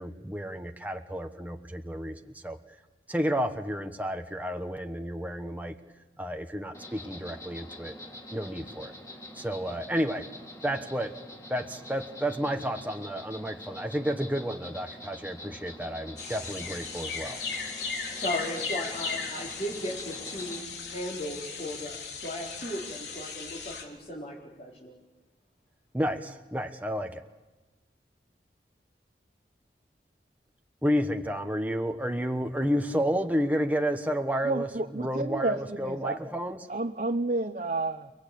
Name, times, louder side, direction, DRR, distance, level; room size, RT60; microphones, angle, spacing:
voice 1, 0.0-2.6 3.1-5.7 6.2-7.9 8.3-8.9 9.3-10.2 10.6-11.1 11.5-17.4 25.9-27.2 30.8-36.6, equal, 10° right, 5 dB, 1.1 m, -31 dB
Insect, 6.7-20.6, left 1 dB, 20° left, 3.6 m, -45 dB
sound 1, 16.2-23.8, left 5 dB, 75° left, 3.8 m, -37 dB
voice 2, 18.1-24.9, left 1 dB, 40° left, -6 dB, 4.2 m, -36 dB
voice 3, 34.4-36.2 36.7-38.1, right 2 dB, 45° right, 4 dB, 0.9 m, -30 dB
30.0 x 19.5 x 8.6 m, 1.1 s
head